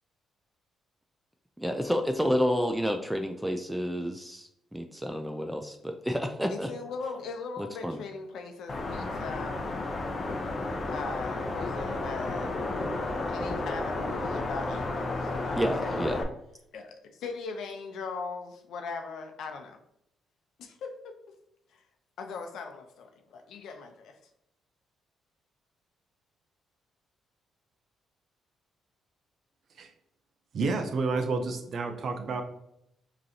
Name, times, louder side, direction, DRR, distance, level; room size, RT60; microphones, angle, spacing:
voice 1, 1.6-6.7 7.6-8.0 15.6-16.2, equal, 5° right, 5 dB, 0.4 m, -30 dB
voice 2, 6.5-9.8 10.9-12.6 13.3-16.2 16.7-19.8 20.6-21.2 21.7-21.8 22.2-24.2, left 4 dB, 75° left, 5 dB, 0.7 m, -39 dB
sound 1, 8.7-16.2, left 2 dB, 35° left, 0.7 m, -32 dB
voice 3, 30.5-32.4, right 3 dB, 55° right, 6 dB, 0.7 m, -30 dB
5.2 x 3.1 x 2.8 m, 0.78 s
cardioid pair, 90°, 0 cm